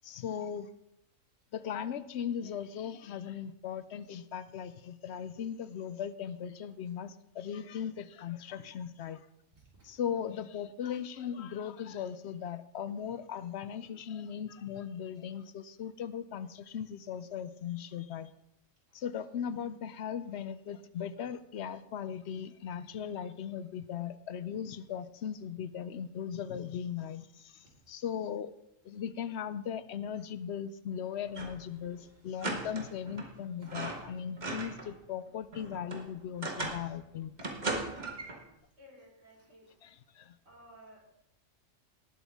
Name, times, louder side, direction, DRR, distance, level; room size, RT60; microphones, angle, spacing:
voice 1, 0.0-0.7 1.5-9.3 9.8-18.3 18.9-28.5 28.8-37.3 39.8-40.4, left 8 dB, 65° left, 14 dB, 0.7 m, -38 dB
sound 1, 31.3-31.7 31.9-32.0 32.4-33.3 33.6-34.9 35.3-36.9 37.4-38.4, right 2 dB, 35° right, 1.6 m, -38 dB
voice 2, 38.8-39.7 40.5-41.0, equal, 55° right, -4 dB, 4.1 m, -55 dB
18.5 x 8.0 x 3.5 m, 0.84 s
omnidirectional pair, 1.3 m